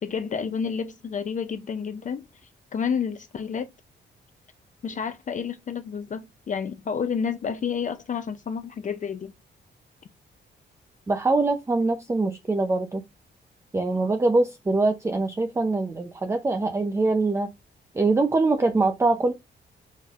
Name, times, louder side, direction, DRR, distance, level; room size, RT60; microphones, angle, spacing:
voice 1, 0.0-2.2 2.7-3.7 4.8-9.3, left 6 dB, 40° left, 0.5 m, -30 dB
voice 2, 11.1-13.0 13.7-17.5 17.9-19.3, right 3 dB, 15° right, 0.5 m, -23 dB
5.1 x 4.2 x 2.4 m
wide cardioid pair, 140°, 19 cm